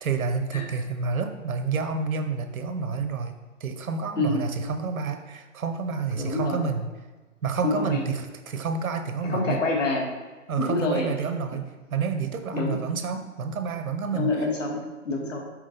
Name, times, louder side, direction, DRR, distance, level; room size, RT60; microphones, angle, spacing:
voice 1, 0.0-3.3 3.6-6.9 7.4-9.6 10.5-14.3, right 5 dB, 90° right, 8 dB, 0.9 m, -29 dB
voice 2, 6.2-6.7 7.6-8.0 9.2-10.1 10.6-11.1 12.5-12.8 14.1-15.4, left 3 dB, 65° left, 0 dB, 1.7 m, -27 dB
6.1 x 4.2 x 3.9 m, 1.2 s
hypercardioid pair, 175°, 41 cm